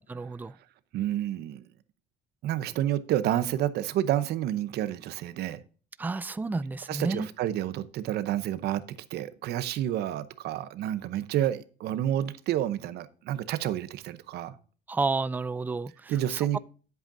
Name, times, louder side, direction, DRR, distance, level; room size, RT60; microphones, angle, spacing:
voice 1, 0.2-0.5 6.0-7.3 14.9-16.6, right 3 dB, 10° right, 0.3 m, -31 dB
voice 2, 0.9-1.6 2.4-5.6 6.9-8.8 9.1-14.5 16.1-16.6, right 12 dB, 75° right, 0.8 m, -29 dB
10.0 x 8.2 x 2.6 m
cardioid pair, 110°, 17 cm